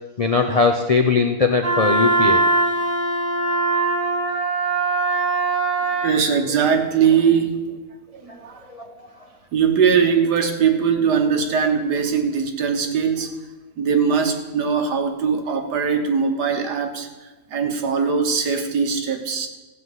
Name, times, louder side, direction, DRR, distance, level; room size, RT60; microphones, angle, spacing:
voice 1, 0.2-2.4 8.7-8.9, left 4 dB, 60° left, 4 dB, 0.3 m, -19 dB
Wind instrument woodwind instrument, 1.6-6.2, right 2 dB, 50° right, 1.7 m, -21 dB
voice 2, 5.8-7.8 8.1-8.6 9.5-13.3 13.8-17.1 17.5-19.5, right 6 dB, 80° right, 5 dB, 1.8 m, -21 dB
15.0 x 5.4 x 8.0 m, 1.1 s
omnidirectional pair, 1.7 m